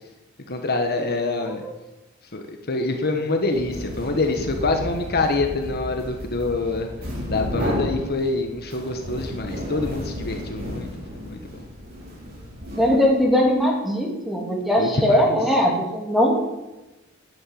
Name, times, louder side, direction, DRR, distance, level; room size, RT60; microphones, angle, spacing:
voice 1, 0.5-1.6 2.3-6.9 7.3-10.9 11.1-11.6 14.8-15.4, left 2 dB, 50° left, 4 dB, 1.3 m, -25 dB
voice 2, 1.4-1.7 12.8-16.3, equal, ahead, -1 dB, 2.9 m, -20 dB
sound 1, 3.4-13.4, equal, 50° right, 4.5 m, -33 dB
11.0 x 9.0 x 9.2 m, 1.0 s
head